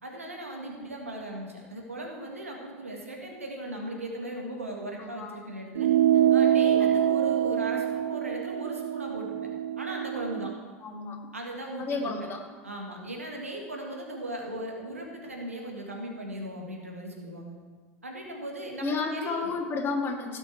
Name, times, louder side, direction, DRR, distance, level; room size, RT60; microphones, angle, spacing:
voice 1, 0.0-5.9 6.3-9.3 9.8-10.5 11.3-12.3 12.6-17.5 18.0-19.5, right 1 dB, 85° right, 1 dB, 1.8 m, -38 dB
voice 2, 5.0-5.4 6.8-7.0 10.8-11.2 11.8-12.4 18.8-20.4, left 4 dB, 30° left, 1 dB, 2.2 m, -32 dB
sound 1, 5.8-10.6, right 10 dB, 65° right, 0.5 m, -25 dB
17.0 x 6.5 x 4.6 m, 1.4 s
figure-of-eight pair, 80°, 7 cm